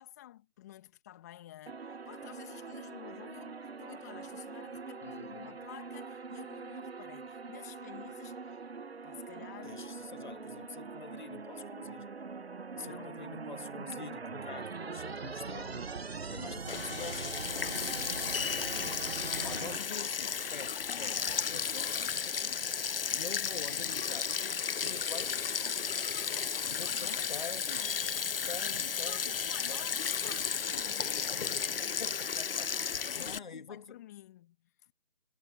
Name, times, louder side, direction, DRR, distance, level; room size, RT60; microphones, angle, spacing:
voice 1, 0.0-8.6 9.0-10.0 12.8-13.2 16.5-16.8 18.2-20.1 26.2-27.5 27.8-27.9 29.0-32.0 32.8-34.9, left 13 dB, 15° left, 2.0 m, -51 dB
sound 1, 1.7-19.8, right 4 dB, 75° right, 1.1 m, -42 dB
voice 2, 5.0-5.6 9.6-12.1 12.7-16.0 16.3-17.3 19.4-22.8 23.1-26.1 26.7-28.1 28.5-29.9 31.8-32.8 33.2-34.0, left 5 dB, 50° left, 2.2 m, -46 dB
Sink (filling or washing), 16.7-33.4, left 6 dB, 65° left, 0.5 m, -34 dB
figure-of-eight pair, 160°, 31 cm